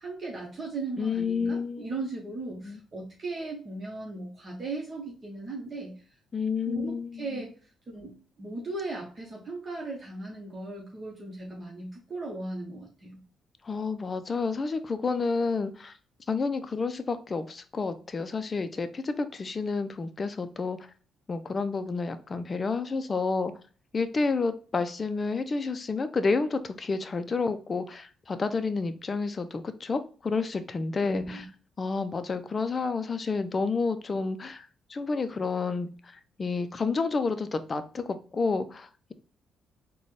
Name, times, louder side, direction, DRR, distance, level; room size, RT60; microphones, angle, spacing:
voice 1, 0.0-6.0 6.7-7.5 7.9-13.2 31.0-31.4, right 2 dB, 40° right, -2 dB, 1.1 m, -37 dB
voice 2, 1.0-1.9 2.6-2.8 6.3-7.4 13.6-15.9 16.3-20.8 21.3-23.5 23.9-31.4 31.8-35.9 36.4-39.1, left 4 dB, 35° left, 10 dB, 0.4 m, -30 dB
3.9 x 2.2 x 3.2 m, 0.38 s
cardioid pair, 90°, 0 cm